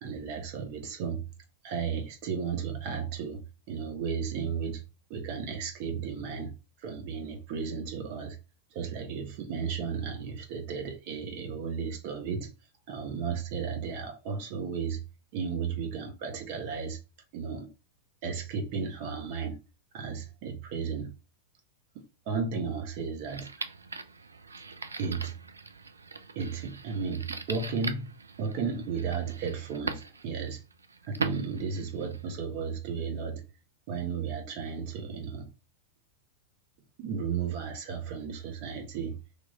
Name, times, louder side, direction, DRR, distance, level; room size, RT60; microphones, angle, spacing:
voice 1, 0.0-1.2 1.6-3.4 3.7-4.8 5.1-6.5 6.8-8.4 8.7-12.5 12.9-15.0 15.3-17.0 17.3-17.7 18.2-19.6 19.9-21.1 21.9-23.6 25.0-25.3 26.3-28.1 28.4-30.6 31.0-33.4 33.9-35.5 37.0-39.2, right 6 dB, 50° right, 1.4 m, -34 dB
sound 1, 23.3-32.3, right 4 dB, 85° right, 0.5 m, -40 dB
3.5 x 3.1 x 3.8 m
figure-of-eight pair, 95°, 0 cm